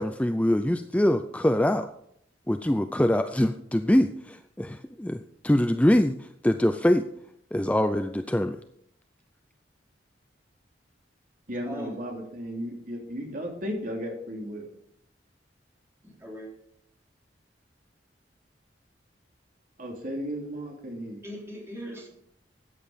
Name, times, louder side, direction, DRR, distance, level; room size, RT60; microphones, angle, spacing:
voice 1, 0.0-1.9 2.5-7.1 7.5-8.6, left 1 dB, 10° left, 9 dB, 0.4 m, -24 dB
voice 2, 11.5-14.7 19.8-21.2, equal, 50° right, 1 dB, 3.1 m, -35 dB
voice 3, 16.0-16.5 21.2-22.1, equal, 15° right, -2 dB, 3.8 m, -39 dB
13.5 x 9.4 x 5.1 m, 0.69 s
head